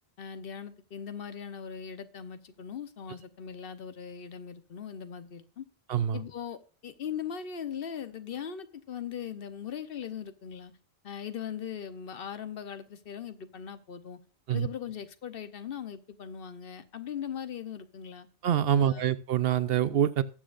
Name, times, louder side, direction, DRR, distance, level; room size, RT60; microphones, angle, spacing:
voice 1, 0.2-5.7 6.1-10.7 11.0-14.2 14.5-18.3 18.7-19.1, left 8 dB, 65° left, 1.0 m, -40 dB
voice 2, 5.9-6.2 14.5-14.7 18.4-20.2, right 10 dB, 70° right, 0.8 m, -25 dB
19.0 x 7.3 x 2.5 m
omnidirectional pair, 1.1 m